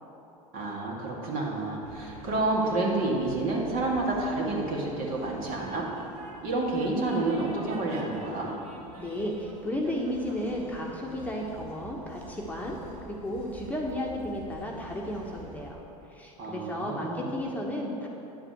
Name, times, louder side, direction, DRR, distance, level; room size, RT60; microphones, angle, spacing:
voice 1, 0.5-5.9 6.4-8.5 16.4-17.3, right 2 dB, 50° right, -3 dB, 2.6 m, -29 dB
Train, 1.8-15.7, right 2 dB, 70° right, 1.7 m, -47 dB
voice 2, 9.0-12.8 13.0-15.8 16.1-18.1, left 1 dB, 10° left, -2 dB, 1.3 m, -33 dB
10.0 x 4.9 x 7.8 m, 2.9 s
hypercardioid pair, 85°, 19 cm